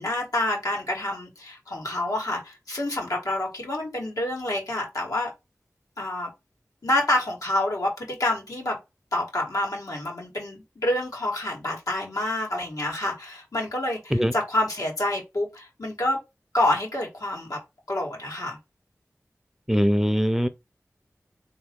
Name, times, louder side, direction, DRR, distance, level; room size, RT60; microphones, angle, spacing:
voice 1, 0.0-5.3 6.0-6.3 6.8-8.8 9.1-16.2 16.5-17.6 17.9-18.6, left 1 dB, 85° left, 1.7 m, -27 dB
voice 2, 19.7-20.5, equal, 5° right, 0.5 m, -21 dB
3.8 x 2.9 x 3.7 m
wide cardioid pair, 40°, 6 cm